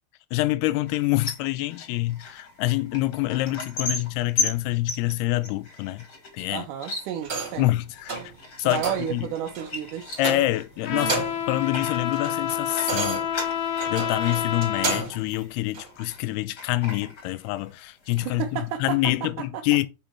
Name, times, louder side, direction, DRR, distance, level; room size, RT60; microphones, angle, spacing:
voice 1, 0.3-6.0 6.3-6.7 7.6-8.2 8.6-8.8 9.1-9.3 10.2-13.3 13.9-19.9, left 17 dB, 90° left, 2.6 m, -26 dB
sound 1, 0.8-16.2 16.6-17.8 18.0-18.7, left 3 dB, 35° left, 1.8 m, -37 dB
voice 2, 6.5-7.7 8.6-10.2 10.9-11.2 18.2-19.5, right 9 dB, 80° right, 1.8 m, -32 dB
sound 2, 7.2-7.7 8.1-8.3 8.7-9.1 9.5-9.7 10.2-10.7 11.0-11.5 11.9-15.2 15.7-15.9, right 4 dB, 40° right, 2.2 m, -32 dB
Trumpet, 10.9-15.1, left 9 dB, 70° left, 2.5 m, -28 dB
7.3 x 5.3 x 4.5 m
omnidirectional pair, 4.5 m